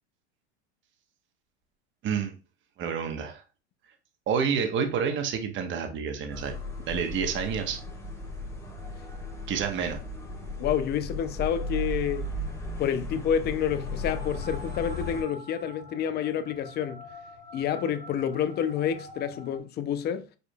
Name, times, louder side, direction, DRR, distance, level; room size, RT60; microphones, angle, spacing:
voice 1, 2.0-2.4 2.8-3.4 4.3-6.5 6.9-7.8 9.5-10.0, right 6 dB, 35° right, 1.1 m, -29 dB
sound 1, 6.3-15.2, left 1 dB, 10° left, 1.4 m, -36 dB
voice 2, 10.6-12.3 12.8-17.0 17.5-20.3, left 9 dB, 30° left, 0.5 m, -29 dB
sound 2, 13.1-19.6, left 1 dB, 85° left, 1.8 m, -46 dB
5.3 x 4.3 x 2.3 m
hypercardioid pair, 110°, 34 cm